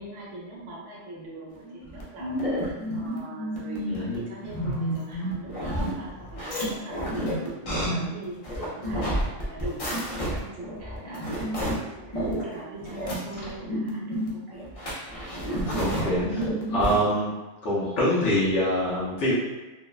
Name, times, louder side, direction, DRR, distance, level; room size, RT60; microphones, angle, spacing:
voice 1, 0.0-7.3 7.8-14.7, right 2 dB, 75° right, -5 dB, 1.0 m, -42 dB
sound 1, 1.6-17.0, equal, 50° left, 0.4 m, -30 dB
voice 2, 3.9-4.2 15.7-17.3 17.6-19.3, equal, 70° left, -8 dB, 1.0 m, -25 dB
2.9 x 2.1 x 2.3 m, 1.2 s
omnidirectional pair, 1.3 m